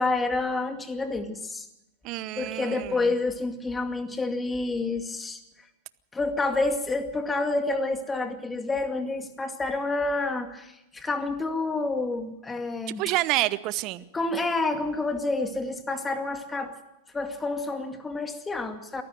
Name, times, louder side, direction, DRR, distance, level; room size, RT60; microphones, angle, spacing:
voice 1, 0.0-1.7 2.4-5.4 6.1-13.1 14.1-16.7 17.1-19.0, left 3 dB, 15° left, 6 dB, 2.3 m, -28 dB
voice 2, 2.0-3.0 13.0-14.0, right 18 dB, 45° right, 17 dB, 0.9 m, -28 dB
23.0 x 14.5 x 7.8 m, 0.90 s
hypercardioid pair, 100°, 0 cm